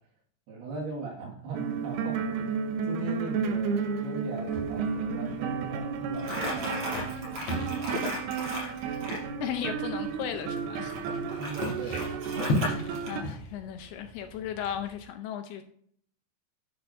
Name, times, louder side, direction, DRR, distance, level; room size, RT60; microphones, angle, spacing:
voice 1, 0.5-2.6 2.9-8.1 11.4-12.3, right 3 dB, 70° right, 1 dB, 3.7 m, -40 dB
sound 1, 1.5-13.2, right 5 dB, 90° right, 1.9 m, -32 dB
sound 2, 4.5-15.0, left 1 dB, 45° left, 3.0 m, -38 dB
Crumpling crinkling, 6.2-9.2 10.9-13.1, equal, 40° right, 5.0 m, -35 dB
voice 2, 9.4-11.0 12.6-15.6, left 9 dB, 80° left, 7 dB, 2.5 m, -36 dB
10.5 x 9.0 x 2.6 m, 0.62 s
omnidirectional pair, 5.0 m